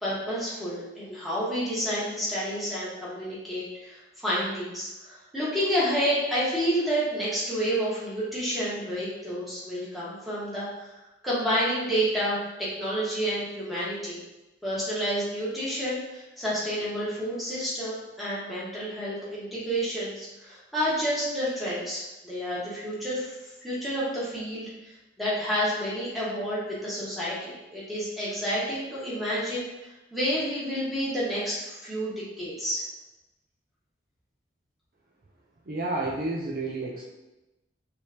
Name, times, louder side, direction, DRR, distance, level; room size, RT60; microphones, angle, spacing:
voice 1, 0.0-10.7 11.2-14.2 14.6-23.3 23.6-32.8, equal, ahead, -9 dB, 1.3 m, -29 dB
voice 2, 35.7-37.1, right 2 dB, 50° right, -2 dB, 0.5 m, -30 dB
4.7 x 3.3 x 2.8 m, 1.0 s
head